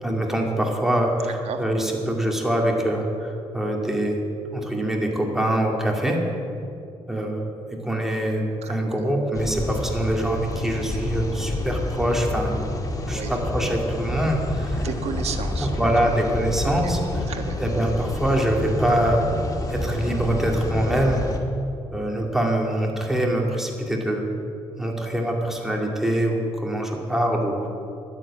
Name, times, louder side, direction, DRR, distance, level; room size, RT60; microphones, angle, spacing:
voice 1, 0.0-4.2 4.5-6.2 7.1-7.5 7.8-12.5 13.1-14.9 15.6-17.0 17.6-19.2 19.7-21.2 21.9-24.2 24.8-27.6, right 1 dB, 5° right, -1 dB, 2.4 m, -24 dB
voice 2, 8.6-9.1 13.1-13.3 14.8-15.9 16.6-16.9 17.3-17.6, right 7 dB, 65° right, 5 dB, 1.4 m, -33 dB
sound 1, 9.3-21.4, left 2 dB, 30° left, 1.6 m, -29 dB
11.5 x 10.0 x 8.7 m, 2.6 s
cardioid pair, 115°, 11 cm